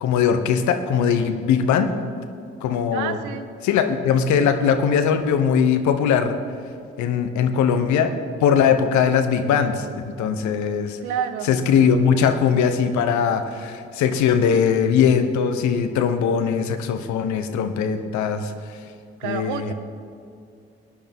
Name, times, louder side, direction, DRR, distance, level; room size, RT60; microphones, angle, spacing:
voice 1, 0.0-1.9 2.2-2.3 2.6-3.2 3.6-6.4 7.0-8.1 8.4-11.0 11.5-18.5 19.2-19.7, left 7 dB, 65° left, 8 dB, 1.0 m, -20 dB
voice 2, 2.9-3.5 11.0-11.5 19.2-19.7, right 9 dB, 75° right, 10 dB, 0.8 m, -28 dB
17.5 x 10.0 x 3.6 m, 2.3 s
hypercardioid pair, 50°, 31 cm